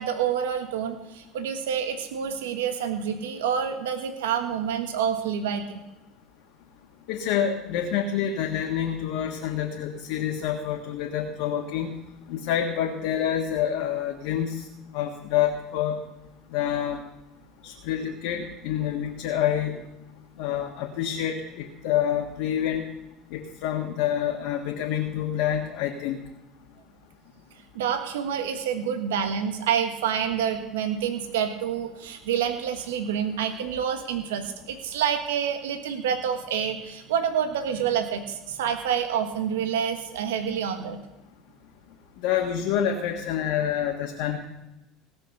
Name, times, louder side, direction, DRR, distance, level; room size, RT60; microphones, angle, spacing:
voice 1, 0.0-5.8 27.7-41.0, right 8 dB, 80° right, 6 dB, 1.4 m, -28 dB
voice 2, 7.1-11.9 12.3-14.7 14.9-16.0 16.5-17.0 17.6-19.8 20.4-22.8 23.3-26.2 42.2-44.4, left 9 dB, 70° left, 2 dB, 1.7 m, -27 dB
17.0 x 6.4 x 6.6 m, 0.99 s
hypercardioid pair, 75°, 0 cm